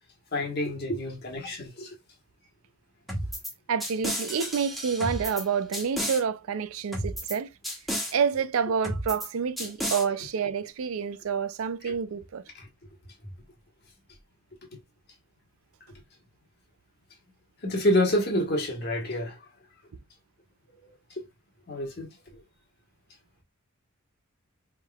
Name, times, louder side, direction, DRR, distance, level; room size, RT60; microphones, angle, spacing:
voice 1, 0.3-2.0 12.5-12.7 17.6-19.5 20.7-21.2 21.7-22.4, left 1 dB, 50° left, 1.3 m, -28 dB
sound 1, 3.1-3.5 3.8-5.4 5.7-6.2 6.9-7.4 7.6-8.1 8.8-9.3 9.6-10.0, equal, ahead, 1.2 m, -32 dB
voice 2, 3.7-7.5 8.1-12.4, right 6 dB, 80° right, 0.4 m, -28 dB
4.5 x 3.6 x 2.3 m
head